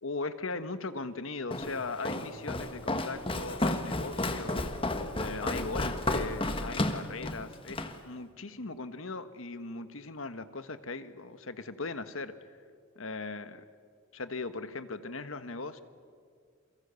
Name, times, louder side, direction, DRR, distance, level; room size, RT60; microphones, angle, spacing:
voice 1, 0.0-4.7 5.2-12.3 12.9-13.6 14.1-15.8, left 3 dB, 85° left, 11 dB, 1.4 m, -39 dB
Walk footsteps, 1.5-8.0, left 2 dB, 25° left, 1.5 m, -32 dB
28.5 x 24.0 x 7.0 m, 2.1 s
head